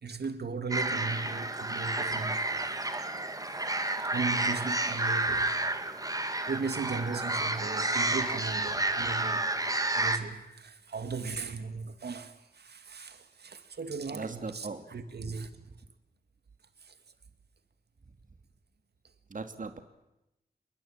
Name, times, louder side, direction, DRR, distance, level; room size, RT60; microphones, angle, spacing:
voice 1, 0.0-2.4 3.5-3.6 4.1-5.5 6.5-9.5 9.9-15.6 16.8-16.9, right 4 dB, 80° right, 2.4 m, -37 dB
sound 1, 0.7-10.2, right 2 dB, 20° right, 2.3 m, -30 dB
voice 2, 14.1-15.0 15.2-15.4 19.3-19.8, right 4 dB, 55° right, 2.4 m, -39 dB
28.5 x 21.5 x 9.0 m
wide cardioid pair, 105°, 17 cm